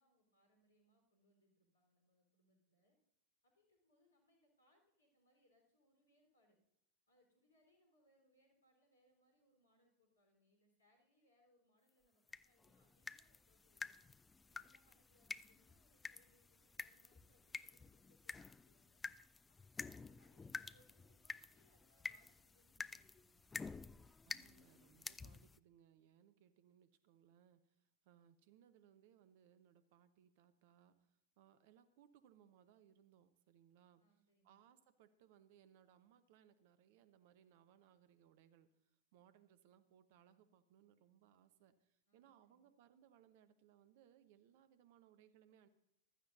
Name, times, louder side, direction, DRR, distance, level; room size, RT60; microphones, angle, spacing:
voice 1, 0.0-3.0 3.4-6.6 7.1-14.1 14.5-19.0 19.5-23.5 34.0-34.6 42.1-42.7, left 1 dB, 70° left, 2 dB, 4.1 m, -77 dB
sound 1, 12.3-25.6, left 4 dB, 15° left, 0.3 m, -51 dB
voice 2, 24.3-27.6 28.0-31.0 31.4-34.0 34.4-38.7 39.1-45.7, right 9 dB, 50° right, 13 dB, 0.9 m, -68 dB
15.5 x 12.5 x 2.7 m, 0.81 s
figure-of-eight pair, 90°, 0 cm